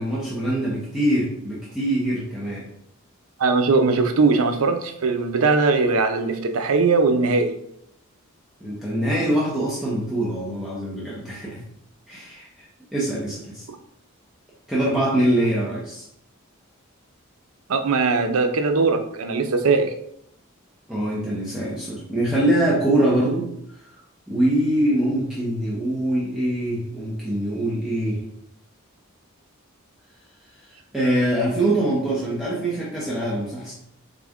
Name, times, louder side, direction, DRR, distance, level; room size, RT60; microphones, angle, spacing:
voice 1, 0.0-2.7 8.6-11.6 12.1-12.7 12.9-13.6 14.7-16.0 20.9-23.5 24.3-28.2 30.9-33.7, right 1 dB, ahead, -7 dB, 0.7 m, -23 dB
voice 2, 3.4-7.6 17.7-19.9, right 4 dB, 85° right, 7 dB, 0.5 m, -20 dB
4.1 x 2.4 x 3.5 m, 0.72 s
head